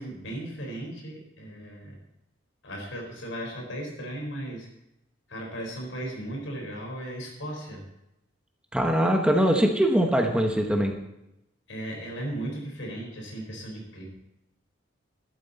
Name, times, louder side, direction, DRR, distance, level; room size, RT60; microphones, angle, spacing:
voice 1, 0.0-2.0 2.6-4.7 5.3-7.8 11.7-14.0, right 1 dB, 80° left, 0 dB, 4.5 m, -36 dB
voice 2, 8.7-10.9, equal, 5° right, 2 dB, 1.2 m, -22 dB
13.0 x 11.5 x 4.2 m, 0.88 s
head